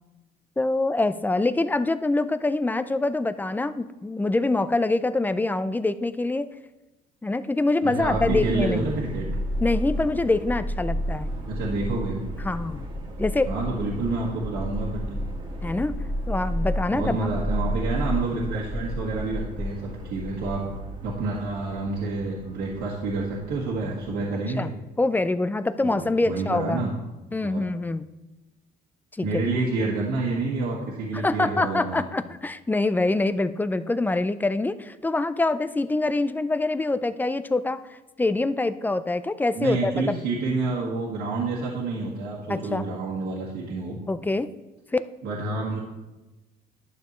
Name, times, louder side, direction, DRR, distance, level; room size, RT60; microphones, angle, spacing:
voice 1, 0.6-6.5 7.2-8.9 9.6-11.3 12.4-12.8 13.2-13.5 15.6-16.0 16.3-17.2 24.6-24.7 25.0-26.8 27.3-28.0 29.2-29.4 31.1-37.8 38.2-40.2 42.5-42.8 44.1-44.5 44.9-45.0, left 2 dB, 10° left, 13 dB, 0.4 m, -25 dB
voice 2, 7.8-9.2 11.4-12.2 13.4-15.2 16.9-20.7 21.0-24.7 25.8-26.9 27.4-27.6 29.2-32.1 39.5-43.9 45.2-45.8, right 3 dB, 75° right, -5 dB, 1.7 m, -28 dB
Subway metro underground, 8.0-24.1, equal, 30° right, 1.7 m, -32 dB
11.5 x 6.7 x 3.1 m, 1.1 s
cardioid pair, 110°, 17 cm